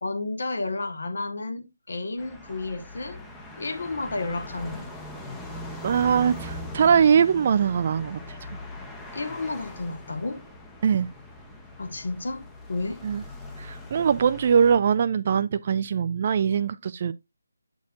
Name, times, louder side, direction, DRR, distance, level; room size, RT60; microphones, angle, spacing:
voice 1, 0.0-3.2 3.6-4.9 9.1-10.4 11.8-12.4 12.7-13.0, left 3 dB, 65° left, 1.4 m, -31 dB
sound 1, 2.2-14.8, left 1 dB, 5° left, 0.8 m, -41 dB
voice 2, 5.8-8.2 10.8-11.1 13.0-13.2 13.6-17.1, right 7 dB, 35° right, 0.3 m, -22 dB
8.2 x 6.3 x 2.5 m
figure-of-eight pair, 155°, 0 cm